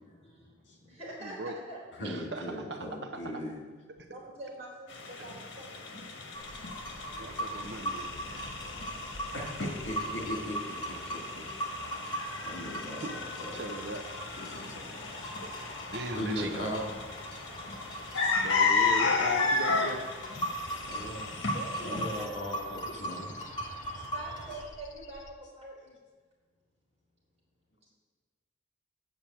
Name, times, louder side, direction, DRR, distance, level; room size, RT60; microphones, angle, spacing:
voice 1, 0.0-1.8 4.1-5.9 20.4-21.0 21.5-22.4 23.9-25.8, right 1 dB, 35° right, -5 dB, 4.0 m, -46 dB
voice 2, 1.2-1.6 2.0-2.9 3.1-3.4 3.9-4.1 7.1-8.2 13.0-13.1 13.5-14.1 15.9-16.7 18.4-20.0, right 2 dB, 65° right, 6 dB, 0.8 m, -38 dB
voice 3, 2.0-3.6 9.3-11.4 12.4-13.7 14.4-15.1 16.1-16.8 20.9-21.2 21.8-23.3 23.9-24.1, equal, 70° left, 0 dB, 2.7 m, -38 dB
sound 1, 4.9-22.3, left 4 dB, 85° left, 1.4 m, -34 dB
sound 2, 6.3-24.6, right 1 dB, 25° left, 2.0 m, -40 dB
sound 3, 20.3-25.3, left 2 dB, 40° left, 0.8 m, -49 dB
8.9 x 7.2 x 7.7 m, 1.5 s
head